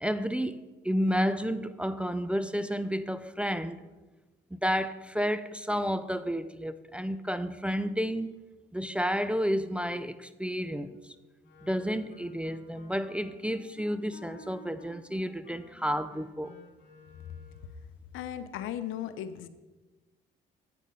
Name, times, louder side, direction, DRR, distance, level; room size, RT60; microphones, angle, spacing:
voice 1, 0.0-3.9 4.5-8.3 8.7-11.0 11.6-16.6, equal, 5° right, 0.4 m, -31 dB
Wind instrument woodwind instrument, 11.4-17.8, left 2 dB, 65° left, 2.5 m, -53 dB
voice 2, 18.1-19.5, left 10 dB, 85° left, 0.6 m, -36 dB
8.4 x 6.3 x 5.4 m
cardioid pair, 90°, 20 cm